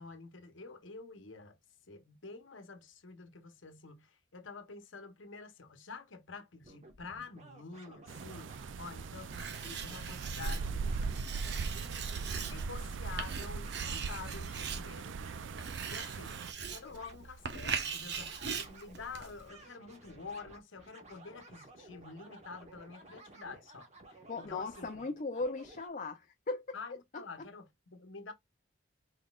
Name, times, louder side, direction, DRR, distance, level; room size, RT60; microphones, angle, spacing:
voice 1, 0.0-1.6 1.9-10.9 11.7-15.2 15.8-25.0 26.7-28.3, left 4 dB, 80° left, 1.0 m, -48 dB
sound 1, 6.6-25.9, right 2 dB, 35° right, 1.4 m, -56 dB
sound 2, 8.1-16.5, right 4 dB, 75° right, 0.4 m, -39 dB
Writing, 9.3-19.5, right 6 dB, 60° right, 1.0 m, -41 dB
voice 2, 24.3-26.8, left 3 dB, 40° left, 0.5 m, -37 dB
4.9 x 4.0 x 2.3 m
head